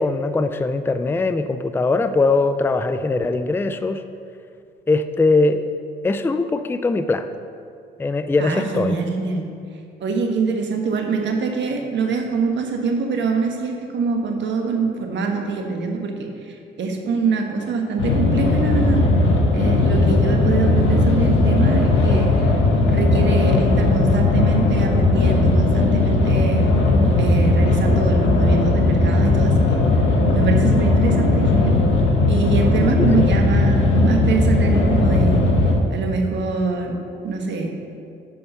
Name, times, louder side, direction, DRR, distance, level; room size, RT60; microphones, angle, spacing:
voice 1, 0.0-4.0 4.9-5.6 6.0-7.3 8.0-8.9 33.0-33.1, left 3 dB, 10° left, 9 dB, 0.4 m, -21 dB
voice 2, 8.4-9.4 10.0-16.1 16.4-19.0 19.5-22.6 22.9-26.7 27.2-29.8 30.3-31.7 32.3-35.4 35.9-37.0 37.2-37.7, right 4 dB, 65° right, 3 dB, 1.4 m, -24 dB
sound 1, 18.0-35.7, left 2 dB, 90° left, 1.4 m, -17 dB
9.2 x 5.4 x 5.6 m, 2.4 s
cardioid pair, 90°, 20 cm